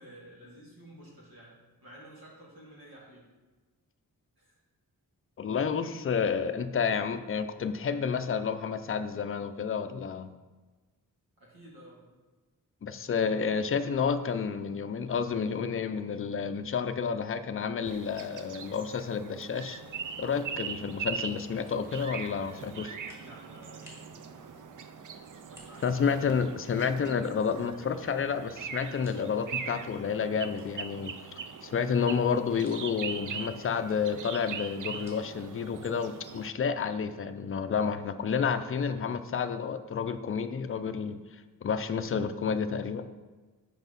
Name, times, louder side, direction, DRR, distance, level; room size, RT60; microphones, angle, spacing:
voice 1, 0.0-1.5 1.8-3.3 4.4-4.6 11.4-12.1 23.2-24.9 25.3-26.0, right 1 dB, 90° right, -4 dB, 2.4 m, -52 dB
voice 2, 5.4-10.3 12.8-19.8 20.2-22.9 25.8-31.1 31.6-41.2 41.6-43.1, left 6 dB, 40° left, 9 dB, 0.4 m, -30 dB
sound 1, 17.8-36.5, right 6 dB, 60° right, 0.5 m, -41 dB
sound 2, 21.7-21.9 22.5-22.6 23.0-23.3 23.6-24.1 25.4-25.9 26.2-26.3 27.5-29.2 29.6-29.7 30.5-31.4 31.8-33.0 33.8-35.3, left 1 dB, 5° right, 1.8 m, -57 dB
6.1 x 5.0 x 5.3 m, 1.3 s
wide cardioid pair, 145°, 36 cm